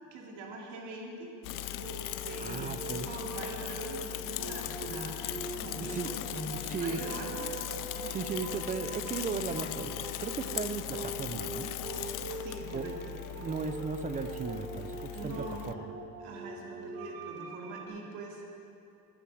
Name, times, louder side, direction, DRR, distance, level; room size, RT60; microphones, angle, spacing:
voice 1, 0.1-1.3 2.2-7.4 12.3-13.1 15.1-15.7 16.2-18.5, right 2 dB, 70° right, -1 dB, 2.6 m, -43 dB
Bicycle / Mechanisms, 1.4-15.7, left 16 dB, 50° left, 0.5 m, -39 dB
sound 1, 1.5-17.9, right 3 dB, 55° right, 2.1 m, -43 dB
voice 2, 2.4-3.1 5.9-6.1 6.5-7.0 8.1-11.7 12.7-12.9 13.1-15.9, right 5 dB, 20° right, 10 dB, 0.5 m, -36 dB
sound 2, 3.4-15.9, left 1 dB, 10° left, 1.5 m, -55 dB
14.5 x 8.8 x 6.3 m, 2.7 s
cardioid pair, 145°, 42 cm